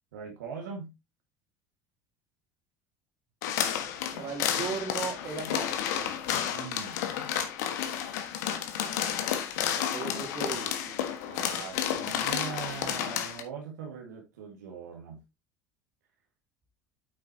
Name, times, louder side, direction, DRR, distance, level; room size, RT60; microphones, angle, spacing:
voice 1, 0.1-0.9 6.5-7.0 11.3-15.2, right 6 dB, 85° right, 1.8 m, -41 dB
sound 1, 3.4-13.4, left 9 dB, 75° left, 1.5 m, -31 dB
voice 2, 4.1-6.2 9.9-11.0, right 5 dB, 45° right, 3.1 m, -37 dB
9.0 x 7.3 x 2.8 m
hypercardioid pair, 80°, 9 cm